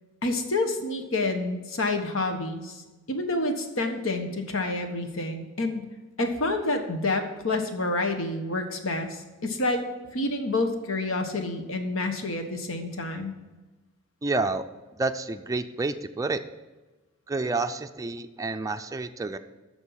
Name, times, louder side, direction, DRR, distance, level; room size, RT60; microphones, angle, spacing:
voice 1, 0.2-2.8 3.1-5.9 6.2-9.8 10.1-13.3, left 2 dB, 70° left, 5 dB, 1.3 m, -28 dB
voice 2, 14.2-14.6 15.0-16.4 17.3-19.4, right 3 dB, 15° right, 7 dB, 0.4 m, -29 dB
13.0 x 4.5 x 7.3 m, 1.2 s
head